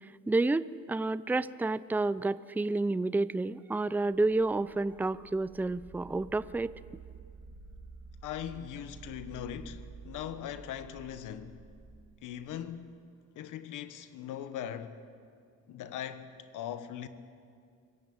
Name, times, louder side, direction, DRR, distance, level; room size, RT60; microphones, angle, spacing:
voice 1, 0.3-6.7, right 2 dB, 5° right, 0.5 m, -30 dB
sound 1, 4.1-12.9, right 5 dB, 50° right, 2.4 m, -51 dB
voice 2, 8.2-11.7 12.2-13.0 13.3-15.0 15.7-17.1, left 10 dB, 85° left, 1.3 m, -40 dB
25.5 x 15.5 x 8.7 m
cardioid pair, 90°, 30 cm